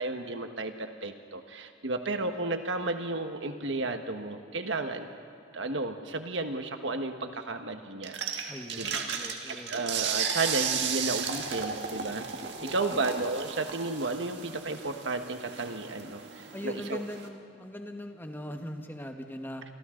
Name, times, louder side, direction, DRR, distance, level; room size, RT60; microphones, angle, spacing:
voice 1, 0.0-5.1 5.5-9.0 9.7-12.3 12.6-17.0, right 3 dB, 90° right, 6 dB, 1.5 m, -33 dB
sound 1, 8.0-17.3, right 6 dB, 65° right, 1.7 m, -35 dB
voice 2, 8.5-9.7 12.6-13.0 16.5-19.6, equal, 10° left, 4 dB, 1.3 m, -40 dB
28.0 x 25.0 x 3.9 m, 2.6 s
head